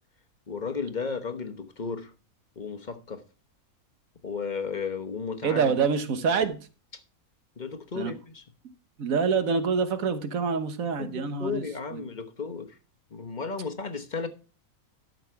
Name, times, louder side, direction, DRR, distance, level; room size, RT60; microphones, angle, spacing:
voice 1, 0.5-2.1 2.6-3.2 4.2-5.7 7.6-8.4 10.8-12.8 13.1-14.3, left 5 dB, 35° left, 1.1 m, -34 dB
voice 2, 5.4-6.6 7.9-8.1 9.0-11.6 11.9-12.0, right 5 dB, 75° right, 1.5 m, -26 dB
12.0 x 6.4 x 4.6 m
omnidirectional pair, 1.5 m